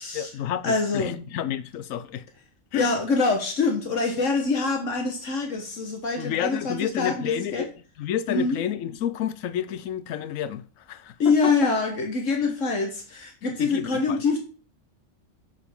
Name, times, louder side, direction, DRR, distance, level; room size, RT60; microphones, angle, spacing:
voice 1, 0.1-2.3 2.7-2.9 6.2-7.7 8.0-11.5 12.4-12.5 13.4-14.2, left 10 dB, 85° left, 1.0 m, -30 dB
voice 2, 0.6-1.2 2.7-7.6 8.3-8.6 11.2-14.4, left 4 dB, 70° left, 1.5 m, -25 dB
8.2 x 6.6 x 3.6 m
omnidirectional pair, 1.3 m